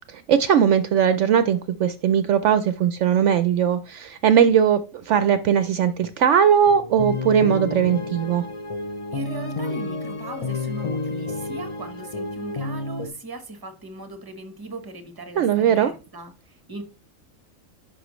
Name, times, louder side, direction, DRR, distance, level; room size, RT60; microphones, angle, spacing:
voice 1, 0.3-8.4 15.4-15.9, right 8 dB, 70° right, 0.8 m, -19 dB
sound 1, 6.7-13.1, left 3 dB, 35° left, 0.5 m, -30 dB
voice 2, 9.1-16.8, right 1 dB, 20° right, 1.1 m, -38 dB
11.0 x 5.5 x 3.1 m
omnidirectional pair, 1.4 m